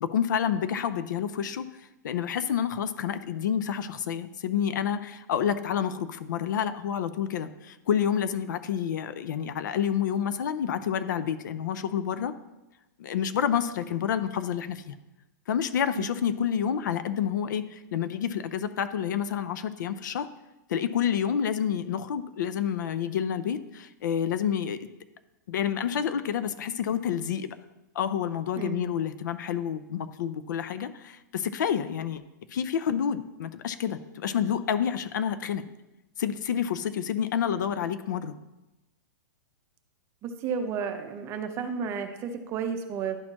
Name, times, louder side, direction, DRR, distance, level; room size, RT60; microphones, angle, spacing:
voice 1, 0.0-1.7 2.0-12.3 13.0-14.9 15.5-20.3 20.7-24.9 25.5-27.6 27.9-32.2 32.5-35.6 36.2-38.4, left 8 dB, 70° left, 12 dB, 0.6 m, -29 dB
voice 2, 28.6-28.9 40.2-43.2, right 6 dB, 25° right, 7 dB, 0.7 m, -32 dB
11.5 x 4.3 x 2.9 m, 1.0 s
hypercardioid pair, 145°, 10 cm